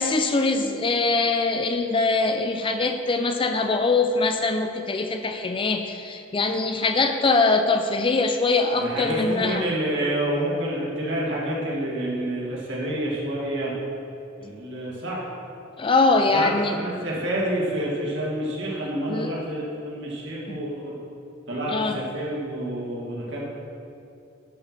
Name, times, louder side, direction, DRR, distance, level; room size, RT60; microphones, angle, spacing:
voice 1, 0.0-9.6 15.8-16.8 19.1-19.3 20.5-20.6 21.7-22.0, left 3 dB, 25° left, 6 dB, 0.4 m, -22 dB
voice 2, 8.8-13.7 14.4-15.3 16.3-21.0 21.5-23.4, right 1 dB, 65° right, -4 dB, 2.1 m, -28 dB
11.5 x 4.6 x 6.1 m, 2.7 s
head